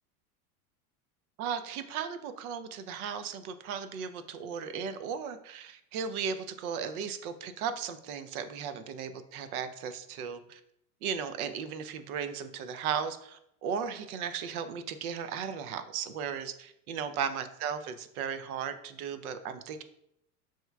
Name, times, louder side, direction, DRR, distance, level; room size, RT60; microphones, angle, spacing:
voice 1, 1.4-10.6 11.0-19.8, right 7 dB, 70° right, 10 dB, 0.7 m, -36 dB
7.7 x 3.0 x 2.3 m, 0.76 s
hypercardioid pair, 110°, 45 cm